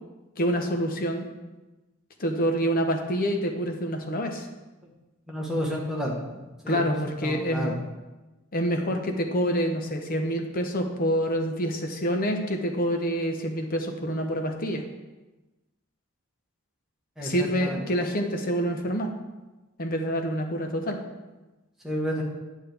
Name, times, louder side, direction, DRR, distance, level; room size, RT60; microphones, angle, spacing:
voice 1, 0.4-1.3 2.2-4.5 6.7-7.7 8.5-14.8 17.2-19.1 19.8-21.0, equal, 40° left, 4 dB, 0.9 m, -27 dB
voice 2, 5.3-6.1 6.6-6.8 7.2-7.7 17.2-17.3 17.6-17.8 21.8-22.2, equal, ahead, -4 dB, 1.4 m, -30 dB
8.8 x 7.5 x 3.5 m, 1.1 s
head